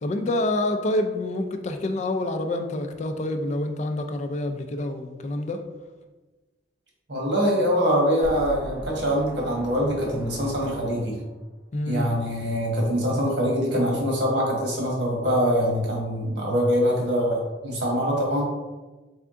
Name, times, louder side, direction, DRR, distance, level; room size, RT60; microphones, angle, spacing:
voice 1, 0.0-5.6 11.7-12.1, left 1 dB, 40° left, 6 dB, 0.3 m, -27 dB
voice 2, 7.1-11.2 11.9-18.4, equal, 70° right, -2 dB, 1.4 m, -24 dB
sound 1, 8.2-11.5, equal, 5° right, 0.6 m, -39 dB
3.5 x 3.5 x 3.7 m, 1.2 s
head